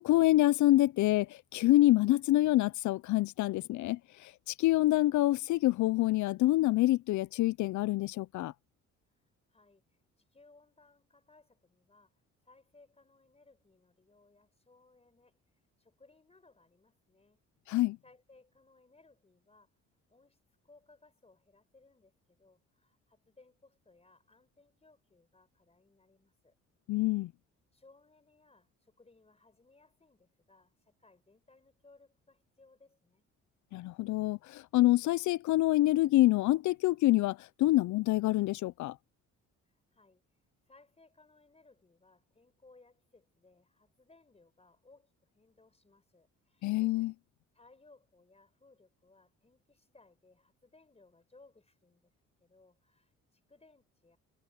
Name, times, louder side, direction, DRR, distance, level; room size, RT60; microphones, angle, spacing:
voice 1, 0.0-4.0 4.6-8.5 17.7-18.0 26.9-27.3 33.7-38.9 46.6-47.1, left 16 dB, 70° left, 0.5 m, -26 dB
voice 2, 9.5-15.4 15.8-17.4 18.0-19.7 20.1-26.5 27.7-33.2 39.6-40.2 40.7-46.8 47.5-52.1 52.4-54.2, left 3 dB, 20° left, 4.8 m, -64 dB
cardioid pair, 90°, 30 cm